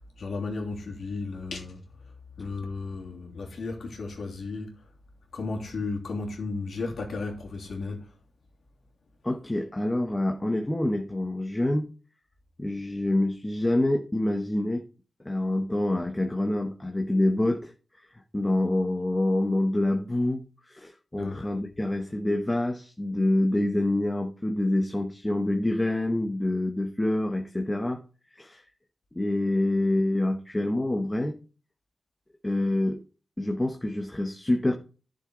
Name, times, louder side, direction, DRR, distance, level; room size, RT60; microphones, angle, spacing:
voice 1, 0.2-1.8 2.4-4.8 5.3-8.1 21.1-21.5, left 3 dB, 75° left, 2.8 m, -34 dB
voice 2, 9.2-11.9 12.6-14.9 15.2-17.7 18.0-28.0 28.3-28.6 29.1-31.4 32.4-33.0 33.4-34.8, left 1 dB, 15° left, 1.0 m, -26 dB
11.0 x 6.7 x 3.8 m
wide cardioid pair, 115°, 0 cm